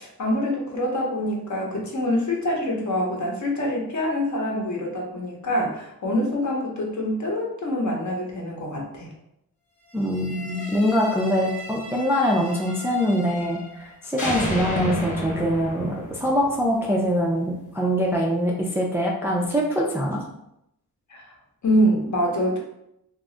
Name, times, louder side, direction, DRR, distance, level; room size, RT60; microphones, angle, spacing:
voice 1, 0.0-9.1 21.1-21.3 21.6-22.6, equal, 50° left, -1 dB, 0.8 m, -25 dB
voice 2, 9.9-20.2, equal, 5° right, -2 dB, 0.4 m, -23 dB
sound 1, 10.0-13.9 14.2-17.2, equal, 20° left, 1.0 m, -33 dB
2.3 x 2.0 x 3.7 m, 0.80 s
wide cardioid pair, 100°, 38 cm